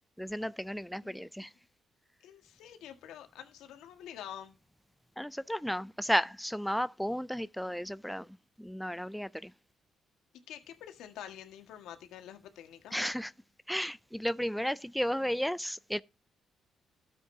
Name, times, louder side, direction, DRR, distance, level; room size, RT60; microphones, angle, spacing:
voice 1, 0.2-1.5 5.2-8.3 8.6-9.5 12.9-13.3 13.7-16.0, equal, ahead, 0.4 m, -33 dB
voice 2, 2.2-4.6 10.5-13.0, left 10 dB, 90° left, 1.7 m, -47 dB
13.0 x 7.8 x 2.8 m
cardioid pair, 90°, 0 cm